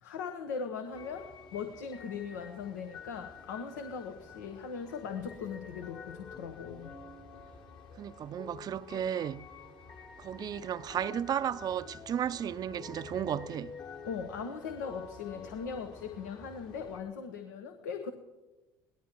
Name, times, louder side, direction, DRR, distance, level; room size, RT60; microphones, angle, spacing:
voice 1, 0.0-1.3 1.5-7.0 14.0-18.1, left 6 dB, 85° left, 1.0 m, -39 dB
sound 1, 0.9-17.0, left 5 dB, 55° left, 2.8 m, -49 dB
voice 2, 8.0-9.5 10.2-13.7, right 9 dB, 45° right, 0.5 m, -34 dB
23.0 x 18.5 x 3.0 m
hypercardioid pair, 65°, 9 cm